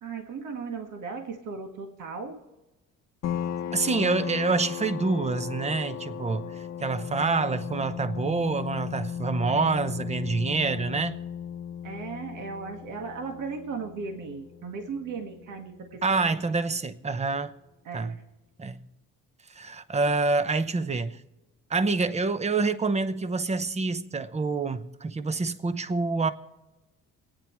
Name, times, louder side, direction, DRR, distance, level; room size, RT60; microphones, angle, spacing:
voice 1, 0.0-2.4 11.8-16.3 17.9-18.2, right 5 dB, 70° right, 1.8 m, -37 dB
sound 1, 3.2-16.5, left 9 dB, 55° left, 0.7 m, -36 dB
voice 2, 3.7-11.2 16.0-17.5 17.9-18.1 18.6-18.8 19.5-21.2 21.7-26.3, right 3 dB, 20° right, 0.9 m, -27 dB
28.5 x 9.7 x 3.1 m
cardioid pair, 105°, 32 cm